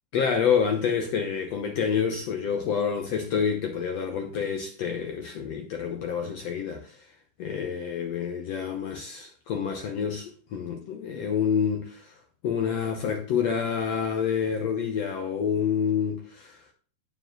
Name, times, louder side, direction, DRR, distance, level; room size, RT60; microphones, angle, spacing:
voice 1, 0.1-7.0 7.4-12.1 12.4-16.6, left 7 dB, 75° left, 1.5 m, -28 dB
9.1 x 6.8 x 3.8 m
omnidirectional pair, 4.2 m